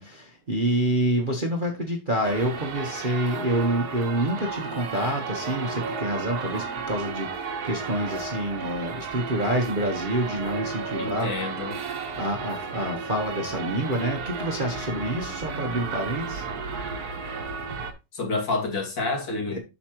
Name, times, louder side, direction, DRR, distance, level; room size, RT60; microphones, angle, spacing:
voice 1, 0.0-11.3 12.1-16.4, right 1 dB, 30° right, 1.0 m, -27 dB
sound 1, 2.2-17.9, right 4 dB, 55° right, 1.5 m, -33 dB
voice 2, 11.0-11.8 18.1-19.6, left 3 dB, 65° left, 3.2 m, -28 dB
8.1 x 6.5 x 3.0 m
omnidirectional pair, 2.1 m